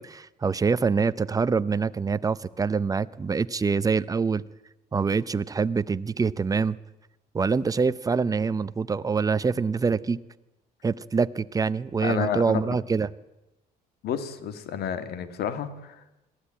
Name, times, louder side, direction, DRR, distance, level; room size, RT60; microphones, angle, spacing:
voice 1, 0.0-4.4 4.9-6.8 7.3-10.2 10.8-13.1, right 5 dB, 20° right, 0.7 m, -25 dB
voice 2, 12.0-12.8 14.0-16.0, left 8 dB, 70° left, 1.9 m, -30 dB
21.5 x 15.0 x 8.9 m
cardioid pair, 110°, 17 cm